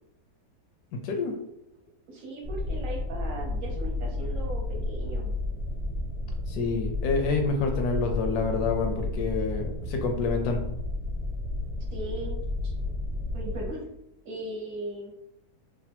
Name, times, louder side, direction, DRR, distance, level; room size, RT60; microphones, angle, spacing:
voice 1, 0.9-1.4 6.5-10.6, left 4 dB, 80° left, 4 dB, 1.1 m, -28 dB
voice 2, 2.1-5.3 11.9-12.4 12.6-12.7 13.3-13.9 14.2-15.1, right 1 dB, 65° right, -1 dB, 1.0 m, -38 dB
sound 1, 2.4-13.7, left 2 dB, 20° right, 0.7 m, -32 dB
3.2 x 2.1 x 2.8 m, 0.81 s
omnidirectional pair, 1.7 m